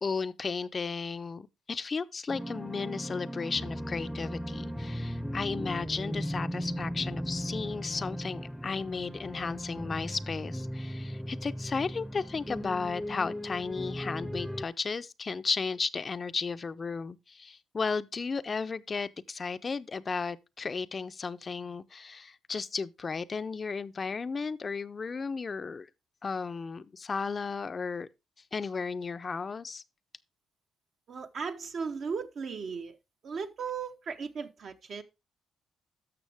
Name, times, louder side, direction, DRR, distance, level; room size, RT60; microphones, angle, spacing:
voice 1, 0.0-25.9 26.2-28.1 28.5-29.8, left 4 dB, 35° left, 0.5 m, -34 dB
sound 1, 2.3-14.6, equal, ahead, 0.7 m, -37 dB
voice 2, 31.1-33.0 33.2-35.0, right 5 dB, 55° right, 0.9 m, -36 dB
12.5 x 6.2 x 3.4 m
cardioid pair, 90°, 0 cm